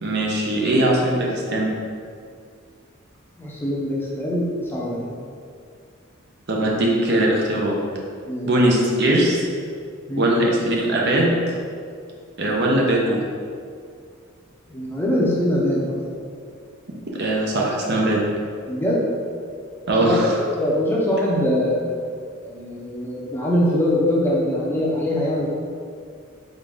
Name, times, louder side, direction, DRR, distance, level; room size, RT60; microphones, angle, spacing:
voice 1, 0.0-1.7 6.5-7.8 8.4-9.5 10.2-11.3 12.4-13.2 17.2-18.2 19.9-20.4, right 1 dB, 55° right, -2 dB, 0.7 m, -20 dB
voice 2, 3.4-5.1 8.3-8.5 10.1-10.3 14.7-16.1 18.7-19.0 20.0-20.2 20.6-21.8 22.4-25.5, left 1 dB, 10° left, -5 dB, 0.6 m, -22 dB
3.8 x 3.8 x 3.5 m, 2.2 s
head